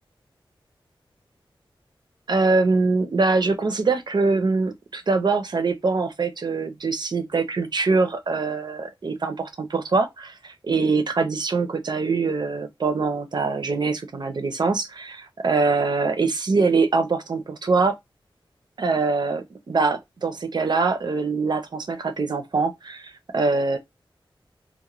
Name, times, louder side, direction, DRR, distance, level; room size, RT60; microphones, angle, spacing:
voice 1, 2.3-18.0 18.8-23.8, right 4 dB, 55° right, 0.5 m, -23 dB
2.4 x 2.1 x 2.9 m
wide cardioid pair, 100°, 9 cm